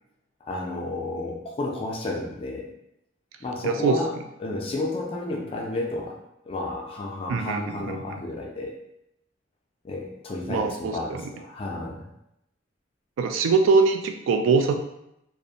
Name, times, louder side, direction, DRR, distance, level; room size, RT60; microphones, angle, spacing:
voice 1, 0.4-2.7 3.4-4.1 4.4-6.2 6.5-8.8 9.8-12.1, left 2 dB, 30° left, 0 dB, 0.4 m, -31 dB
voice 2, 3.6-4.0 7.3-8.2 10.5-11.2 13.2-14.7, right 4 dB, 85° right, 5 dB, 0.3 m, -23 dB
2.5 x 2.0 x 2.7 m, 0.82 s
head